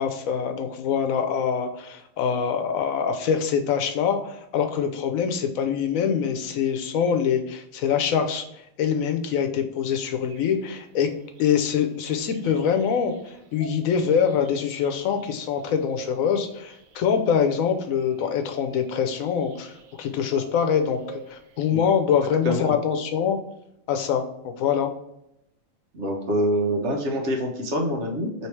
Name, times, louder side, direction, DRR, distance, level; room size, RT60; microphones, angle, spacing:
voice 1, 0.0-11.1 11.4-19.7 20.0-23.4 23.9-24.9, left 7 dB, 85° left, 6 dB, 1.0 m, -24 dB
sound 1, 10.3-21.7, right 6 dB, 85° right, 0.4 m, -46 dB
voice 2, 25.9-28.5, equal, 60° right, 1 dB, 1.1 m, -25 dB
3.2 x 3.1 x 4.5 m, 0.80 s
omnidirectional pair, 1.4 m